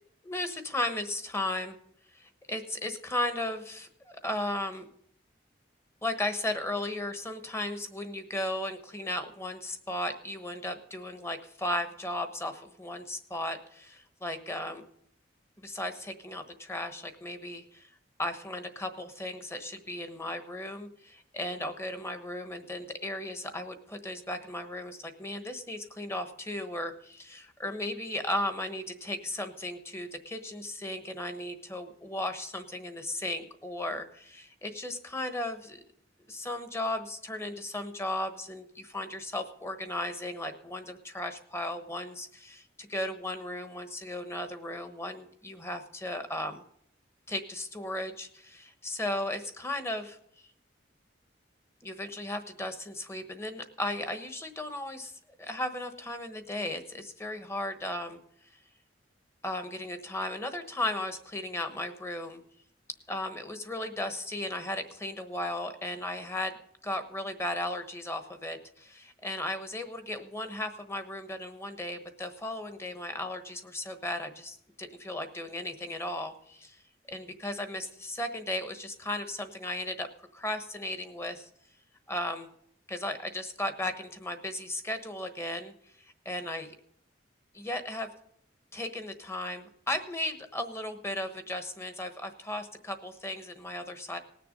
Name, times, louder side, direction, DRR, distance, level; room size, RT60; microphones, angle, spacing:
voice 1, 0.3-1.8 2.1-4.9 6.0-14.8 15.6-17.9 18.2-35.8 36.3-46.6 47.3-50.2 51.8-55.1 55.4-58.2 59.4-62.4 63.1-66.6 66.8-76.8 77.1-81.5 82.1-82.5 82.9-85.7 86.2-86.7 87.5-88.1 88.7-94.2, left 1 dB, 15° left, 8 dB, 1.1 m, -35 dB
19.0 x 6.8 x 5.3 m, 0.69 s
head